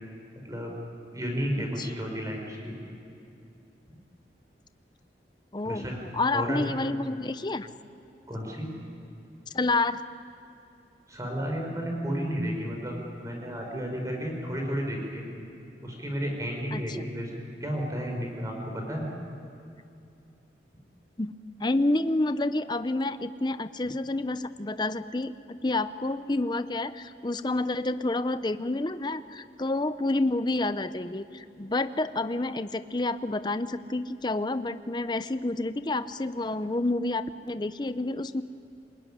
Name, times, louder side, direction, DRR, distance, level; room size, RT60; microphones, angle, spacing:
voice 1, 0.4-0.7 1.1-2.7 5.6-6.0 6.3-6.6 8.3-8.7 11.1-15.2 15.8-19.1, equal, 20° right, 1 dB, 5.1 m, -32 dB
voice 2, 5.5-7.7 9.5-10.0 16.7-17.1 21.2-21.3 21.6-38.4, left 2 dB, 25° left, 12 dB, 0.6 m, -29 dB
26.5 x 19.5 x 10.0 m, 2.6 s
head